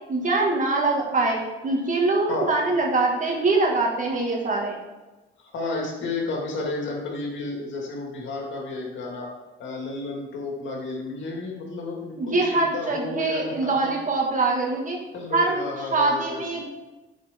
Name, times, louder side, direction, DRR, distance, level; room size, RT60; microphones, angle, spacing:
voice 1, 0.1-4.8 12.2-15.0 15.3-16.7, right 3 dB, 40° right, -1 dB, 2.0 m, -23 dB
voice 2, 5.4-9.3 9.6-13.9 15.1-16.6, left 3 dB, 70° left, 0 dB, 2.1 m, -32 dB
10.0 x 5.0 x 3.7 m, 1.1 s
cardioid pair, 90°, 20 cm